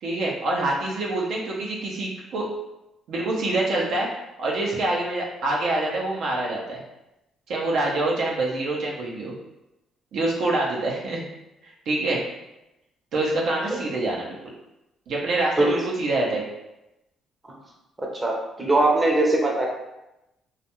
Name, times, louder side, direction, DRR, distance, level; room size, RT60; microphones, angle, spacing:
voice 1, 0.0-2.5 3.1-4.1 4.4-6.8 7.5-9.3 10.1-11.2 11.9-12.2 13.1-14.4 15.1-16.4, right 2 dB, 70° right, -3 dB, 0.5 m, -25 dB
voice 2, 18.0-19.7, right 2 dB, 20° right, -1 dB, 0.6 m, -21 dB
2.3 x 2.2 x 2.9 m, 0.92 s
supercardioid pair, 75°, 0 cm